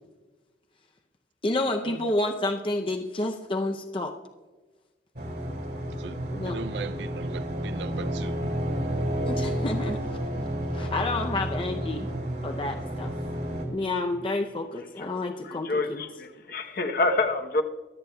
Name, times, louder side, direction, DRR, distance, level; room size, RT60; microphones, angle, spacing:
voice 1, 1.4-4.1 6.3-6.6 9.2-10.0 10.7-12.1 12.4-13.1 13.7-16.0, left 2 dB, 30° left, 0.6 m, -29 dB
sound 1, 5.2-13.7, equal, 60° right, 2.9 m, -31 dB
voice 2, 6.0-8.4, right 5 dB, 75° right, 0.4 m, -39 dB
voice 3, 15.4-17.6, left 2 dB, 55° left, 0.9 m, -27 dB
24.0 x 8.6 x 2.3 m
head